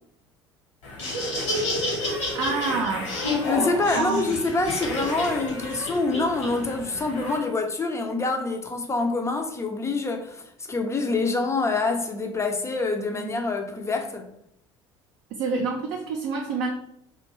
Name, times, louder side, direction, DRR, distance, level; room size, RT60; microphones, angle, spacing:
Laughter, 0.8-7.4, left 1 dB, 70° left, 1.0 m, -30 dB
voice 1, 2.3-3.2 3.9-4.3 13.1-13.3 15.3-16.7, right 4 dB, 55° right, 0.4 m, -27 dB
voice 2, 3.4-14.3, left 3 dB, 20° left, 0.4 m, -26 dB
2.5 x 2.2 x 2.9 m
figure-of-eight pair, 60°, 15 cm